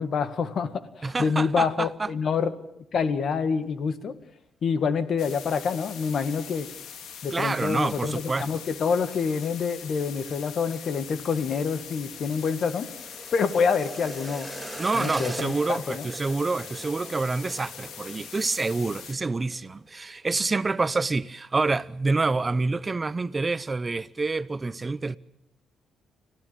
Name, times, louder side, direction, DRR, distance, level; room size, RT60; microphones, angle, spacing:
voice 1, 0.0-4.2 4.6-6.7 7.2-12.9 13.3-14.5 14.9-16.1, left 5 dB, 55° left, 1.9 m, -27 dB
voice 2, 1.0-2.1 7.3-8.6 14.8-25.2, right 3 dB, 25° right, 0.8 m, -27 dB
sound 1, 5.2-19.1, left 8 dB, 75° left, 2.1 m, -42 dB
sound 2, 10.8-19.6 19.9-20.2 20.5-21.0 21.4-21.5, right 1 dB, ahead, 6.9 m, -42 dB
26.0 x 16.5 x 9.0 m
cardioid pair, 90°, 0 cm